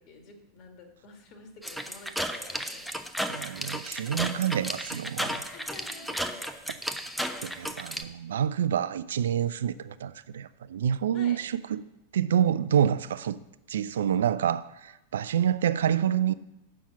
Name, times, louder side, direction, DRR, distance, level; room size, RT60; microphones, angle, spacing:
voice 1, 0.0-2.9 5.5-6.4 11.1-11.4, left 3 dB, 40° left, 1.8 m, -49 dB
sound 1, 1.6-8.0, equal, ahead, 0.6 m, -34 dB
voice 2, 3.3-5.4 7.4-11.8 12.1-13.4 13.7-16.3, right 9 dB, 60° right, 0.4 m, -27 dB
7.2 x 5.5 x 7.3 m
figure-of-eight pair, 90°, 0 cm